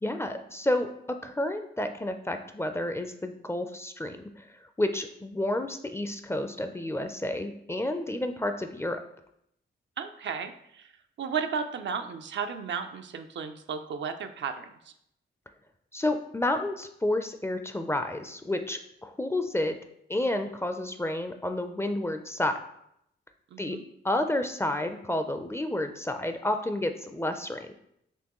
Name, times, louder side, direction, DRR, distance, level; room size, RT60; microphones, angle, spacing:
voice 1, 0.0-4.5 4.8-9.0 15.9-19.8 20.1-22.6 23.6-23.8 24.0-27.7, left 1 dB, 15° left, 7 dB, 0.4 m, -30 dB
voice 2, 10.0-10.9 11.2-14.9 23.5-23.8, right 6 dB, 70° right, 7 dB, 0.4 m, -34 dB
4.4 x 3.0 x 3.0 m, 0.74 s
cardioid pair, 65°, 20 cm